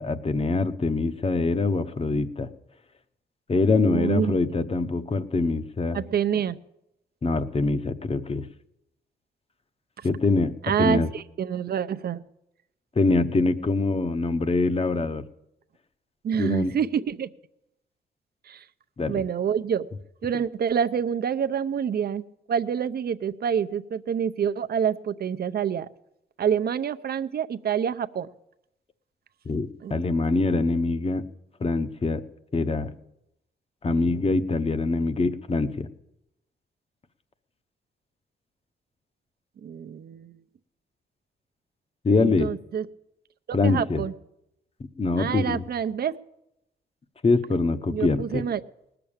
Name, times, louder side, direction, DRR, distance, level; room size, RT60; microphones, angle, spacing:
voice 1, 0.0-2.5 3.5-6.0 7.2-8.5 10.0-10.5 10.8-11.1 13.0-15.2 16.4-16.7 19.0-19.2 29.5-31.2 31.6-32.2 32.5-32.9 33.8-35.9 42.0-42.5 43.5-44.0 45.0-45.6 47.2-48.4, left 3 dB, 30° left, 11 dB, 0.9 m, -24 dB
voice 2, 3.8-4.4 5.9-6.6 10.6-12.2 16.2-17.3 18.5-18.6 19.1-19.9 20.2-25.9 26.4-28.3 29.8-30.0 39.6-40.4 42.1-42.9 43.6-44.1 45.2-46.1 47.9-48.6, right 8 dB, 55° right, 11 dB, 0.6 m, -27 dB
19.0 x 6.9 x 8.7 m, 0.84 s
cardioid pair, 105°, 19 cm